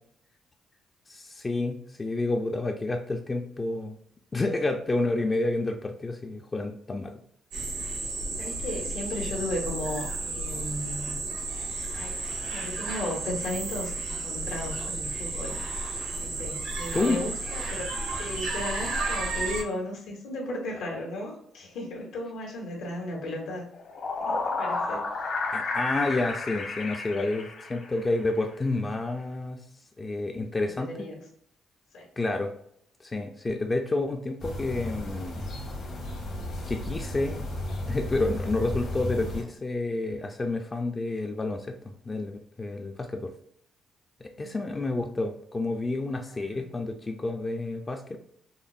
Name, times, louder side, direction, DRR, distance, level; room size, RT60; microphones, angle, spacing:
voice 1, 1.1-4.0 4.3-7.1 16.9-17.2 25.5-29.6 30.0-31.1 32.2-32.5 33.0-35.5 36.7-37.4 37.9-41.8 42.1-43.3 44.2-48.2, left 2 dB, 25° left, 3 dB, 0.4 m, -29 dB
sound 1, 7.5-19.6, right 3 dB, 90° right, 1.2 m, -33 dB
voice 2, 8.4-11.2 11.9-15.6 16.2-17.9 18.2-23.6 24.2-25.0 30.8-31.2 31.9-32.1 44.4-44.5 46.4-46.7, left 1 dB, 85° left, -1 dB, 1.2 m, -35 dB
sound 2, 23.7-28.1, left 3 dB, 50° left, 0.9 m, -31 dB
sound 3, 34.4-39.4, left 1 dB, 70° left, 1.4 m, -34 dB
5.3 x 2.0 x 2.4 m, 0.71 s
cardioid pair, 110°, 0 cm